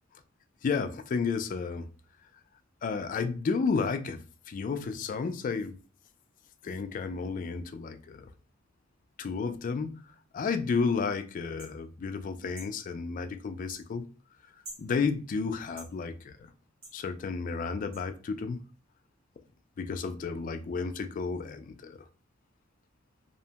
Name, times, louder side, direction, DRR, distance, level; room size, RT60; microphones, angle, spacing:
voice 1, 0.6-1.9 2.8-5.8 6.6-8.3 9.2-14.1 14.8-16.5 16.9-18.6 19.8-22.0, left 5 dB, 40° left, 0.3 m, -32 dB
sound 1, 11.6-11.7 12.5-12.7 13.7-13.8 14.6-14.9 15.8-15.9 16.8-17.0 17.9-18.0, right 1 dB, 85° right, 1.3 m, -46 dB
2.7 x 2.1 x 2.8 m
head